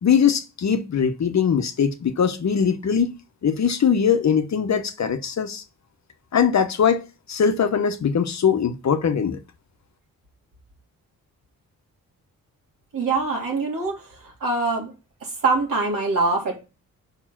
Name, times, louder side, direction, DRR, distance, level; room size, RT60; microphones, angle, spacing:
voice 1, 0.0-3.1 3.4-5.6 6.3-9.4, left 7 dB, 50° left, 0.9 m, -21 dB
voice 2, 12.9-14.9 15.2-16.6, right 3 dB, 70° right, 3.1 m, -24 dB
5.6 x 4.4 x 5.9 m
cardioid pair, 65°, 34 cm